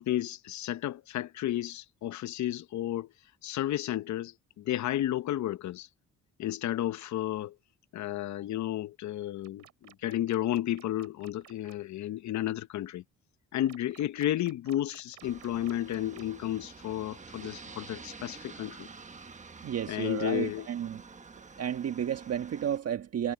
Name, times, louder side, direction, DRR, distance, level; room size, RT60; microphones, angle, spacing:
voice 1, 0.0-3.1 3.4-5.9 6.4-7.5 7.9-13.0 13.5-18.9 19.9-20.7, left 13 dB, 70° left, 0.8 m, -32 dB
sound 1, 9.4-11.8 13.7-16.4, right 12 dB, 75° right, 3.7 m, -55 dB
Aircraft, 15.2-22.8, right 4 dB, 25° right, 1.3 m, -48 dB
voice 2, 19.6-21.0 21.6-23.3, right 9 dB, 55° right, 1.4 m, -32 dB
cardioid pair, 90°, 30 cm